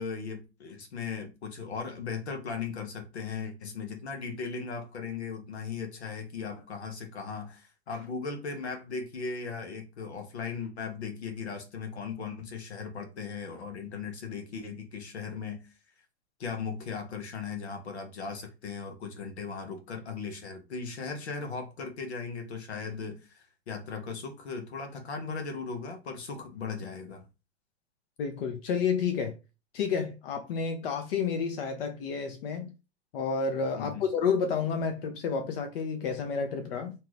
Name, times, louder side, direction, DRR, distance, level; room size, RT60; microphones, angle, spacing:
voice 1, 0.0-15.6 16.4-27.2 33.8-34.0, left 5 dB, 80° left, 1.0 m, -37 dB
voice 2, 28.2-29.4 29.7-32.7 33.1-36.9, left 5 dB, 60° left, 0.7 m, -30 dB
2.8 x 2.3 x 3.1 m
hypercardioid pair, 105°, 32 cm